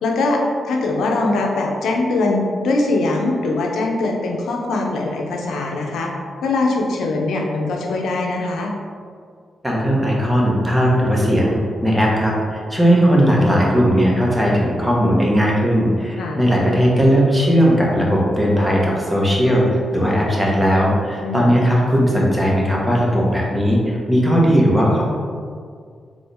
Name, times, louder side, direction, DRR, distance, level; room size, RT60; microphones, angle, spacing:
voice 1, 0.0-6.1 6.4-8.7 16.2-16.4 21.2-21.5, left 2 dB, 80° left, 0 dB, 0.6 m, -21 dB
voice 2, 9.6-25.0, equal, 10° right, -4 dB, 1.4 m, -17 dB
3.9 x 3.8 x 3.5 m, 2.1 s
supercardioid pair, 50°, 0 cm